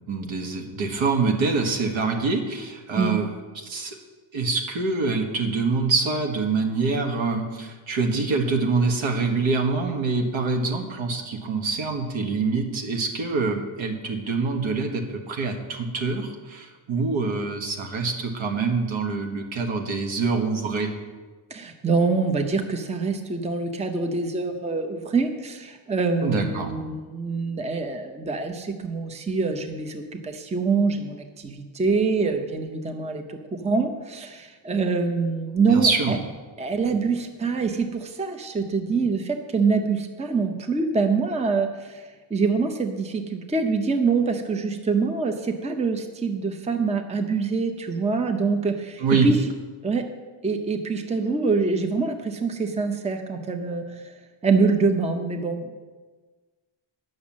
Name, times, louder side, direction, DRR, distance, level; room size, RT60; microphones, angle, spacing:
voice 1, 0.1-3.2 3.6-4.0 4.3-20.9 26.2-26.7 35.7-36.1 49.0-49.3, right 4 dB, 70° right, 3 dB, 1.6 m, -25 dB
voice 2, 21.5-36.2 36.6-49.4 49.8-50.0 50.4-54.1 54.4-55.8, right 4 dB, 15° right, 6 dB, 0.7 m, -25 dB
9.1 x 6.3 x 7.3 m, 1.4 s
cardioid pair, 125°, 48 cm